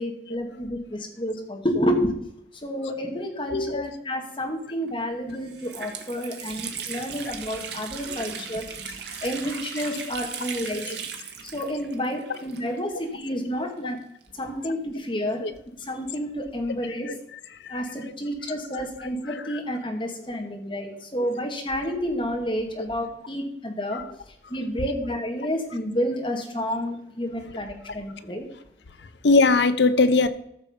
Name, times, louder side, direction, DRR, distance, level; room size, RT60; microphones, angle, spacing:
voice 1, 0.0-2.1 2.6-8.7 9.2-10.9 11.4-14.0 14.4-15.5 15.9-17.1 17.7-24.0 24.5-28.5, equal, 25° left, 1 dB, 1.9 m, -30 dB
voice 2, 3.5-3.8 9.1-9.5 10.7-11.0 12.3-12.4 15.4-15.5 17.1-17.9 19.2-19.6 21.2-21.3 23.9-24.1 29.2-30.3, left 3 dB, 80° left, 11 dB, 0.8 m, -23 dB
Water tap faucet, 4.8-4.9 5.3-13.0 13.3-13.4 14.2-15.8, right 6 dB, 75° right, 1.5 m, -38 dB
13.5 x 6.4 x 5.1 m, 0.73 s
head